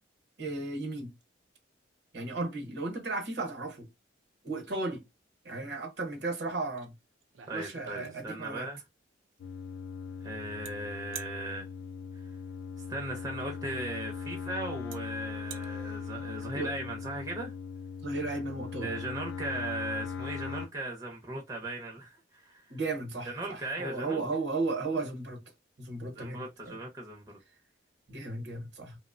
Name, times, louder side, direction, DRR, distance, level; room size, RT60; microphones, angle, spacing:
voice 1, 0.4-1.1 2.1-3.9 4.4-5.0 5.4-6.9 7.5-8.7 16.5-16.7 18.0-18.9 22.7-25.4 25.8-26.8 28.1-29.0, right 3 dB, 60° right, 0.8 m, -35 dB
sound 1, 6.8-6.9 7.2-8.6 10.6-10.7 11.1-11.4 13.2-13.3 14.2-14.3 14.9-15.0 15.3-15.7, right 8 dB, 80° right, 0.4 m, -45 dB
voice 2, 7.5-8.8 10.2-11.7 12.9-17.5 18.8-22.8 23.3-24.2 26.1-27.4, right 2 dB, 20° right, 0.5 m, -38 dB
sound 2, 9.4-20.7, left 6 dB, 60° left, 0.3 m, -39 dB
2.8 x 2.0 x 2.4 m
head